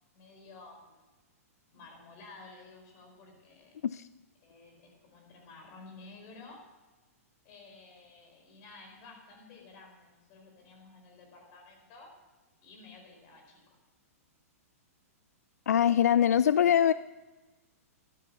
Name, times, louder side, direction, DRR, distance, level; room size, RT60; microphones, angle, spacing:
voice 1, 0.1-1.0 1.7-3.8 4.4-6.6 7.4-12.1 12.6-13.8, left 3 dB, 40° left, 3 dB, 4.7 m, -53 dB
voice 2, 15.7-16.9, left 9 dB, 90° left, 16 dB, 0.4 m, -23 dB
13.0 x 11.5 x 5.7 m, 1.2 s
hypercardioid pair, 140°, 8 cm